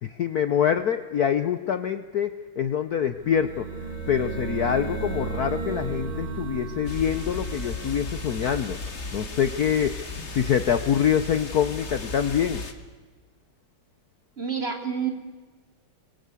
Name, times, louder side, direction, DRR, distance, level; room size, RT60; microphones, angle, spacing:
voice 1, 0.0-8.8 9.1-12.7, left 8 dB, 55° left, 11 dB, 1.2 m, -25 dB
sound 1, 3.0-9.7, right 3 dB, 70° right, 4.8 m, -35 dB
sound 2, 6.9-12.7, left 3 dB, 35° left, 2.1 m, -35 dB
voice 2, 14.4-15.1, right 7 dB, 30° right, 4 dB, 3.1 m, -28 dB
26.0 x 22.0 x 8.4 m, 1.4 s
omnidirectional pair, 2.3 m